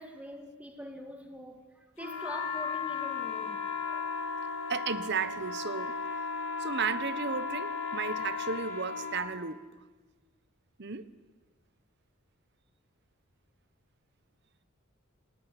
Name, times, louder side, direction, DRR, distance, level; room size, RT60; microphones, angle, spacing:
voice 1, 0.0-4.1, equal, 5° right, 1.9 m, -45 dB
sound 1, 2.0-9.2, left 5 dB, 65° left, 5.7 m, -35 dB
voice 2, 4.7-5.9 6.6-9.6 10.8-11.1, right 5 dB, 50° right, 1.2 m, -34 dB
28.0 x 20.0 x 9.9 m
head